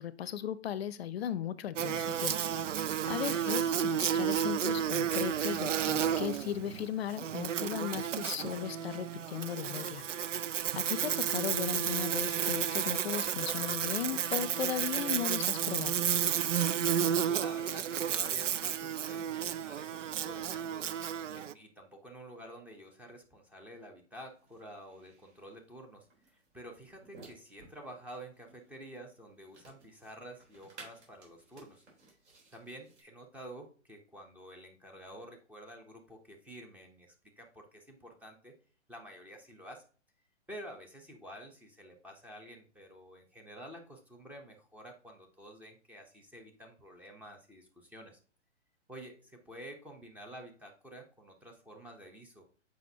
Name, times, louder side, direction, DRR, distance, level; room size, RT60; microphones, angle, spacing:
voice 1, 0.0-2.4 3.1-10.0 10.7-15.9, left 9 dB, 60° left, 17 dB, 0.6 m, -37 dB
Buzz, 1.8-21.5, right 9 dB, 85° right, 0.5 m, -32 dB
voice 2, 3.1-3.5 17.2-21.0 21.3-31.8 32.5-38.5 38.9-39.8 40.5-48.2 48.9-52.4, right 1 dB, 5° right, 2 dB, 0.6 m, -50 dB
sound 1, 24.3-33.0, right 3 dB, 65° right, 3.5 m, -58 dB
7.7 x 5.1 x 2.7 m, 0.39 s
hypercardioid pair, 130°, 36 cm